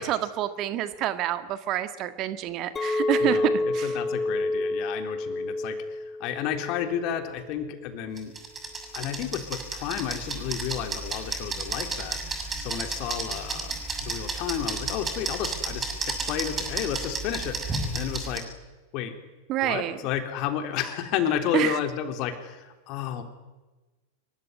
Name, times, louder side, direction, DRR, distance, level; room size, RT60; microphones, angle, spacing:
voice 1, 0.0-3.9 19.5-20.0 21.5-21.8, right 12 dB, 35° right, 10 dB, 1.8 m, -28 dB
Chink clink, 2.8-7.1 7.4-7.9, left 2 dB, 15° left, 1.9 m, -29 dB
voice 2, 3.2-8.3 8.9-13.7 14.0-18.5 18.9-19.1 19.6-23.2, left 9 dB, 40° left, 6 dB, 3.7 m, -32 dB
sound 1, 8.2-18.4, right 3 dB, 20° right, 6.9 m, -32 dB
26.0 x 23.0 x 9.7 m, 1.2 s
figure-of-eight pair, 90°, 0 cm